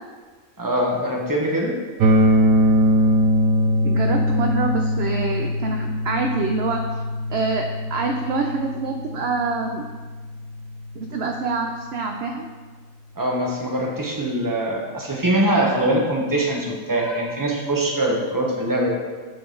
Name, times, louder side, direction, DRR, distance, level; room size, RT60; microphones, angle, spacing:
voice 1, 0.6-1.8 13.2-18.9, right 1 dB, 15° right, -1 dB, 1.0 m, -23 dB
sound 1, 2.0-11.9, equal, 85° right, 1.1 m, -22 dB
voice 2, 3.8-7.0 7.3-9.8 10.9-12.5, right 4 dB, 60° right, 3 dB, 0.7 m, -26 dB
10.5 x 3.9 x 3.8 m, 1.4 s
omnidirectional pair, 1.5 m